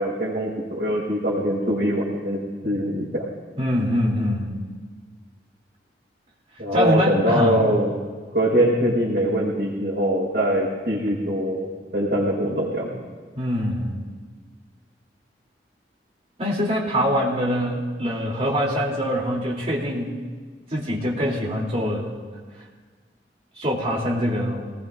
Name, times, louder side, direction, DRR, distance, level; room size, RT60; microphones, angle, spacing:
voice 1, 0.0-3.2 6.6-7.9 8.3-12.9, equal, 55° right, -10 dB, 5.0 m, -23 dB
voice 2, 3.6-4.6 6.7-7.7 13.3-14.0 16.4-20.2 20.7-22.1 23.5-24.7, equal, 35° right, -3 dB, 3.1 m, -24 dB
27.0 x 19.5 x 2.6 m, 1.5 s
head